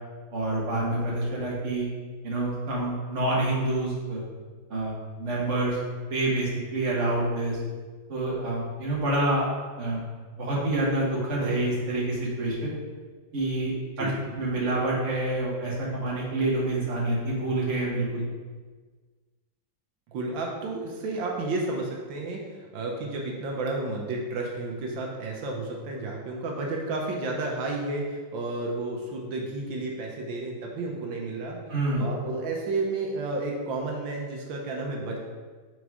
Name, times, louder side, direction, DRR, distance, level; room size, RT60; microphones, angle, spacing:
voice 1, 0.3-1.9 2.2-4.2 4.7-5.8 6.1-7.6 8.1-9.5 9.8-10.0 10.4-12.7 13.3-14.1 14.4-18.2 31.7-32.1, right 2 dB, 40° right, -4 dB, 1.5 m, -27 dB
voice 2, 20.1-31.6 32.0-35.2, right 2 dB, 85° right, 0 dB, 1.5 m, -31 dB
4.8 x 4.1 x 4.8 m, 1.4 s
omnidirectional pair, 2.1 m